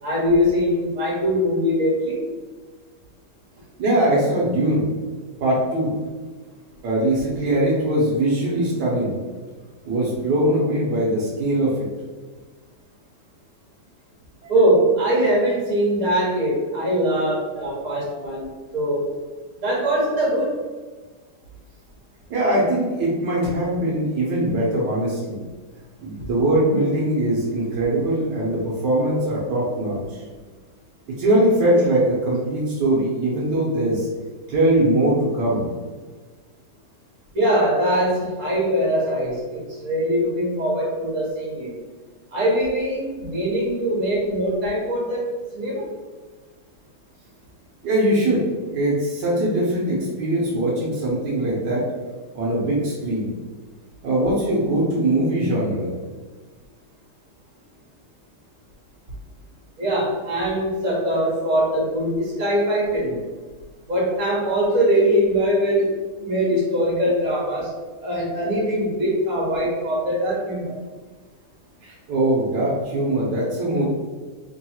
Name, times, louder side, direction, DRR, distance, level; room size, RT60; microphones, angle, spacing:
voice 1, 0.0-2.2 14.5-19.1 19.6-20.6 37.3-41.7 42.3-45.3 45.5-45.9 59.8-63.3 63.9-65.9 66.2-67.8 68.0-70.8, equal, 60° right, -5 dB, 1.7 m, -22 dB
voice 2, 3.8-4.8 5.4-5.9 6.8-9.2 9.8-11.7 22.3-25.4 26.0-30.2 31.1-34.1 34.5-35.7 47.8-48.4 48.7-51.8 52.3-53.3 54.0-55.9 71.8-73.8, right 1 dB, 85° right, -4 dB, 1.5 m, -21 dB
3.5 x 2.3 x 4.3 m, 1.4 s
omnidirectional pair, 1.8 m